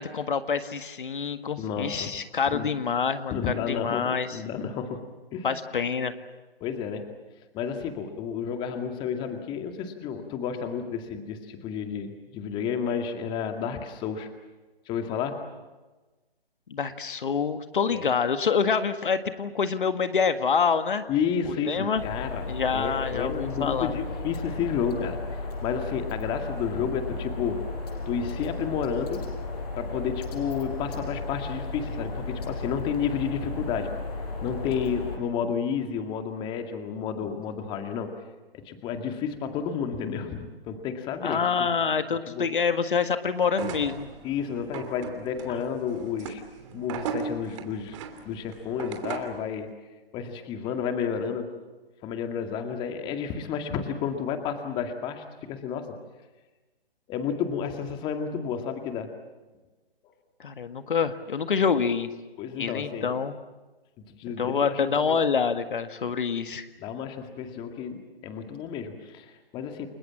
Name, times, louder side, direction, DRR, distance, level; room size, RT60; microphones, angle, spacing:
voice 1, 0.0-4.4 5.4-6.1 16.7-21.0 21.7-22.0 22.5-24.0 41.2-44.1 60.4-62.1 62.5-63.3 64.4-66.7, left 6 dB, 60° left, 9 dB, 1.8 m, -26 dB
voice 2, 1.6-2.1 2.5-2.7 3.3-5.1 5.3-5.6 6.6-7.1 7.5-14.3 14.9-15.4 17.9-18.0 21.1-22.4 22.7-25.2 25.6-27.6 28.1-29.2 29.8-33.9 34.4-38.1 38.5-41.4 42.3-42.5 44.2-46.4 46.7-48.0 48.2-49.7 50.1-51.5 52.0-56.0 57.1-59.1 62.4-63.1 64.0-65.2 66.0-66.2 66.8-69.9, left 7 dB, 15° left, 6 dB, 2.1 m, -31 dB
sound 1, 22.0-35.2, left 3 dB, 40° left, 5.2 m, -34 dB
sound 2, 43.5-49.4, right 6 dB, 30° right, 2.9 m, -38 dB
30.0 x 21.5 x 7.4 m, 1.2 s
figure-of-eight pair, 145°, 30 cm